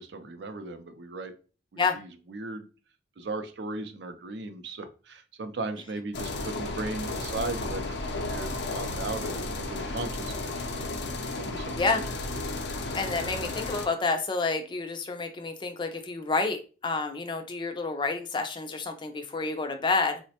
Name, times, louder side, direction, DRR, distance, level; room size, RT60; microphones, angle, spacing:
voice 1, 0.0-1.3 1.7-2.7 3.2-10.8 11.4-11.8, right 2 dB, 75° right, 8 dB, 0.5 m, -37 dB
sound 1, 6.1-13.9, left 2 dB, 80° left, 0.5 m, -33 dB
voice 2, 12.9-20.2, left 3 dB, 25° left, 7 dB, 0.4 m, -29 dB
3.9 x 2.1 x 2.8 m, 0.35 s
head